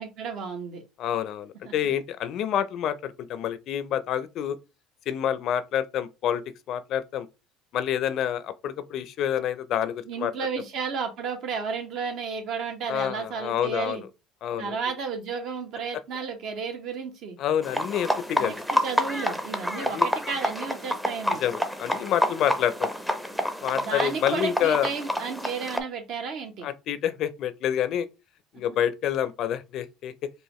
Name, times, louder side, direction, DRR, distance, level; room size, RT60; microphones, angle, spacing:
voice 1, 0.0-0.8 1.6-1.7 10.0-14.0 14.6-17.4 18.3-21.4 23.8-26.7, right 5 dB, 60° right, 1.3 m, -33 dB
voice 2, 1.0-4.6 5.1-6.4 6.7-7.3 7.7-10.3 12.9-14.1 14.4-14.8 17.4-18.6 19.8-20.1 21.4-22.9 23.6-24.9 26.6-28.1 28.5-30.3, left 10 dB, 55° left, 0.5 m, -28 dB
sound 1, 17.6-25.8, equal, ahead, 0.6 m, -28 dB
4.7 x 2.5 x 3.1 m
supercardioid pair, 110°, 0 cm